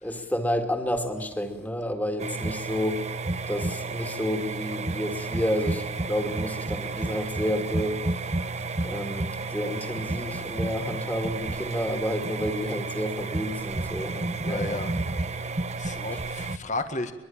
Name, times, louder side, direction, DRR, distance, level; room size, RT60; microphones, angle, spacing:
voice 1, 0.0-3.1 3.5-8.0 8.8-14.9 15.9-16.2, equal, 10° left, 2.4 m, -30 dB
sound 1, 2.2-16.6, right 3 dB, 35° right, 0.9 m, -31 dB
voice 2, 14.4-14.9 15.8-17.1, left 2 dB, 40° left, 1.7 m, -33 dB
23.0 x 23.0 x 8.8 m
head